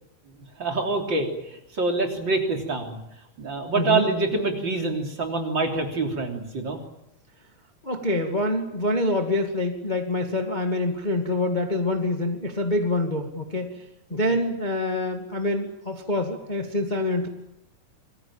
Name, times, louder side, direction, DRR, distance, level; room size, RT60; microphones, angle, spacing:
voice 1, 0.6-3.0 3.4-6.8 14.1-14.2, right 3 dB, 35° right, 3 dB, 3.9 m, -26 dB
voice 2, 3.7-4.1 7.8-13.8 14.1-17.3, left 1 dB, 15° left, 4 dB, 1.9 m, -26 dB
27.5 x 21.0 x 8.9 m, 0.81 s
omnidirectional pair, 3.5 m